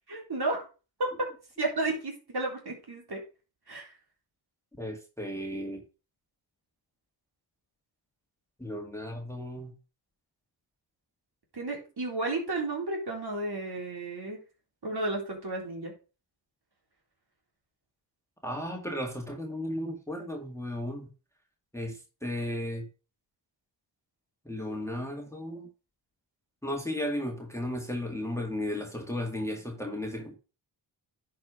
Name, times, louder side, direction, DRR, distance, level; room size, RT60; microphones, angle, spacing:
voice 1, 0.1-0.7 1.0-1.3 1.6-3.2 3.7-3.9 11.5-14.4 14.8-15.9, right 2 dB, 50° right, 3.7 m, -32 dB
voice 2, 4.8-5.8 8.6-9.7 18.4-21.1 21.7-22.9 24.5-25.7 26.6-30.4, left 1 dB, 5° left, 2.0 m, -35 dB
10.5 x 4.7 x 4.9 m
cardioid pair, 65°, 49 cm